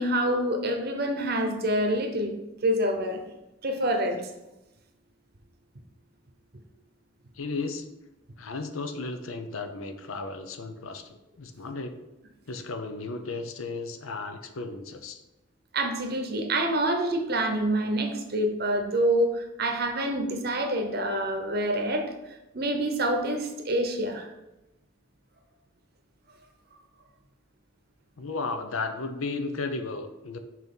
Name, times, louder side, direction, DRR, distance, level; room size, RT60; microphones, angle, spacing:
voice 1, 0.0-2.3 2.6-3.2 3.6-4.3 15.7-22.1 22.5-24.3, right 1 dB, 45° right, 4 dB, 0.8 m, -26 dB
voice 2, 7.4-7.9 8.4-12.0 12.5-15.2 28.2-30.4, left 3 dB, 80° left, 7 dB, 0.7 m, -34 dB
5.9 x 3.0 x 5.3 m, 0.97 s
head